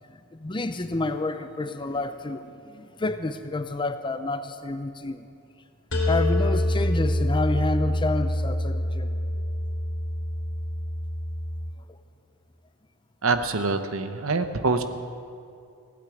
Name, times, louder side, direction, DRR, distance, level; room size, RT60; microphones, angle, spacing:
voice 1, 0.1-5.3 6.1-9.1, left 2 dB, 25° left, 9 dB, 0.6 m, -29 dB
sound 1, 5.9-11.7, left 1 dB, 60° left, 2.9 m, -26 dB
voice 2, 13.2-14.8, right 3 dB, 70° right, 9 dB, 0.9 m, -25 dB
16.5 x 8.6 x 9.2 m, 2.5 s
head